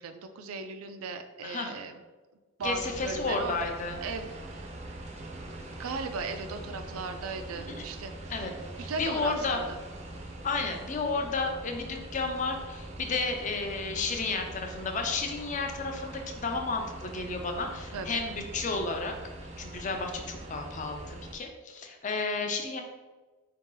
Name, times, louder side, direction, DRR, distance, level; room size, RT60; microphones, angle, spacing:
voice 1, 0.0-2.0 2.6-3.6 4.0-4.7 5.6-8.1 8.8-9.8 17.9-18.2, right 4 dB, 90° right, 8 dB, 0.4 m, -37 dB
voice 2, 1.4-1.7 2.6-4.0 8.3-8.5 8.8-9.6 10.4-19.1 19.6-22.8, left 3 dB, 35° left, 4 dB, 0.5 m, -32 dB
sound 1, 2.6-21.3, right 1 dB, 30° right, 0.5 m, -43 dB
3.9 x 2.8 x 3.7 m, 1.2 s
head